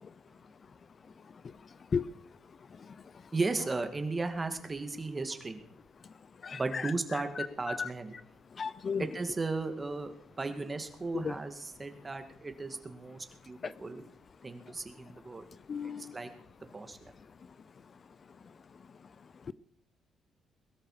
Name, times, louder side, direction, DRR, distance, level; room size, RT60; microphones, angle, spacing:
voice 1, 3.3-5.6 6.5-8.1 9.0-14.0 14.4-15.5 15.8-16.3 16.6-17.0, right 3 dB, 25° right, 7 dB, 2.3 m, -36 dB
voice 2, 8.6-9.0 15.7-16.0, left 6 dB, 45° left, 17 dB, 0.6 m, -32 dB
21.5 x 13.0 x 5.1 m, 0.69 s
cardioid pair, 90°, 0 cm